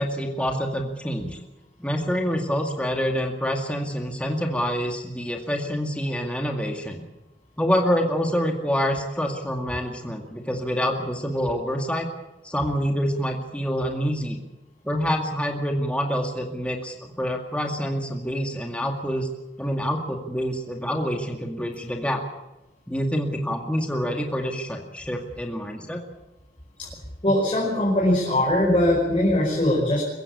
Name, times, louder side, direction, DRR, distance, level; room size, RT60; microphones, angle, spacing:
voice 1, 0.0-1.4 1.8-7.0 7.6-12.1 12.4-14.4 14.8-19.3 19.6-22.2 22.9-26.0, equal, 5° left, 2 dB, 2.1 m, -26 dB
voice 2, 27.2-30.0, left 1 dB, 30° left, -3 dB, 5.2 m, -21 dB
23.5 x 15.5 x 8.5 m, 0.98 s
head